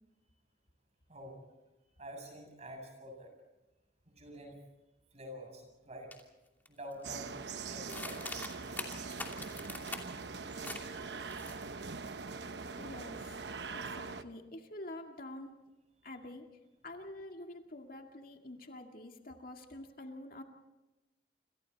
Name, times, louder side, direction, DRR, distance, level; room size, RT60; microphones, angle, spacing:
voice 1, 2.0-3.3 4.2-4.6 5.1-6.1 6.7-7.3 7.7-8.4 9.8-9.9, equal, 40° right, 3 dB, 7.5 m, -47 dB
sound 1, 6.1-6.2 6.6-7.1 7.9-10.2 10.6-10.9 11.1-11.9, left 2 dB, 10° left, 2.7 m, -43 dB
sound 2, 7.0-14.2, right 4 dB, 75° right, 1.0 m, -42 dB
voice 2, 12.8-13.4 13.7-15.5 16.0-16.5 16.8-20.4, left 1 dB, 55° left, 3 dB, 2.2 m, -47 dB
27.5 x 27.5 x 4.2 m, 1.0 s
head